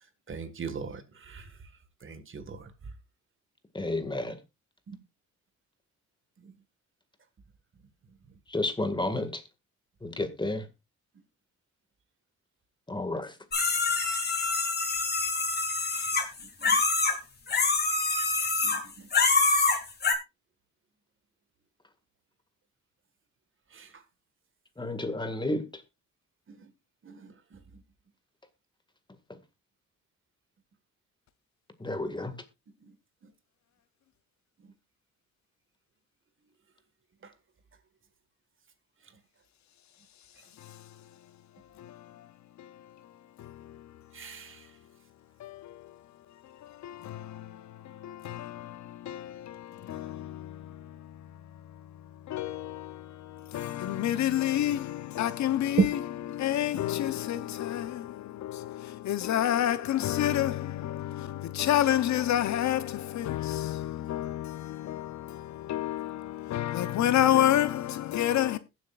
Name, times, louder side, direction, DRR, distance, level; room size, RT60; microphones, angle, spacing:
voice 1, 0.3-1.5 2.0-2.7 4.9-5.0 15.9-16.1 16.6-16.8 18.6-19.1 23.7-23.9 26.6-26.7 27.0-27.3 44.1-44.6 55.8-55.9, right 6 dB, 40° right, 1.7 m, -33 dB
voice 2, 3.8-4.4 8.5-9.3 10.0-10.6 12.9-13.3 24.8-25.6 31.8-32.3, left 2 dB, 15° left, 1.9 m, -31 dB
sound 1, 13.5-17.2 17.5-18.8 19.1-20.1, left 3 dB, 35° left, 2.8 m, -26 dB
voice 3, 45.4-45.8 46.8-47.5 48.0-50.6 52.3-55.9 56.3-68.6, left 12 dB, 65° left, 0.8 m, -29 dB
21.0 x 7.7 x 2.4 m
cardioid pair, 90°, 30 cm